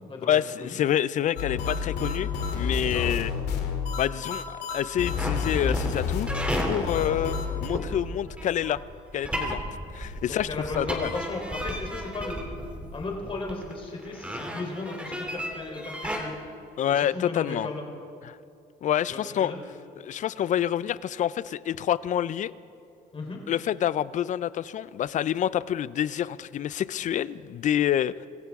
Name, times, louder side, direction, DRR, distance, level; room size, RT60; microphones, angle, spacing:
voice 1, 0.3-3.3 4.0-6.3 6.7-8.8 9.1-9.6 9.9-10.5 10.8-11.1 16.8-17.7 18.3-18.4 18.8-19.5 20.0-22.5 23.5-28.3, left 10 dB, 50° left, 18 dB, 0.5 m, -27 dB
sound 1, 1.4-7.7, left 5 dB, 85° left, 2.1 m, -29 dB
voice 2, 2.8-3.2 6.9-7.2 10.2-12.4 12.9-16.4 16.9-17.9 19.1-19.6 23.1-23.4, left 3 dB, 30° left, 0 dB, 3.7 m, -36 dB
sound 2, 5.2-16.2, equal, 5° right, 2.9 m, -33 dB
26.0 x 15.0 x 3.6 m, 2.6 s
cardioid pair, 110°, 17 cm